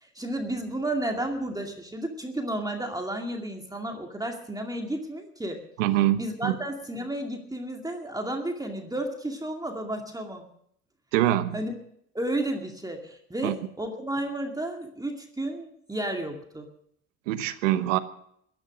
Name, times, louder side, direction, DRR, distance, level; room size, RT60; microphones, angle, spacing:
voice 1, 0.0-5.6 6.2-10.5 11.5-11.7 12.1-16.7, right 1 dB, 10° right, 3 dB, 2.3 m, -32 dB
voice 2, 5.8-6.6 11.1-11.6 13.4-13.5 17.3-18.0, right 14 dB, 85° right, 13 dB, 1.0 m, -24 dB
16.0 x 11.0 x 6.1 m, 0.71 s
hypercardioid pair, 70°, 37 cm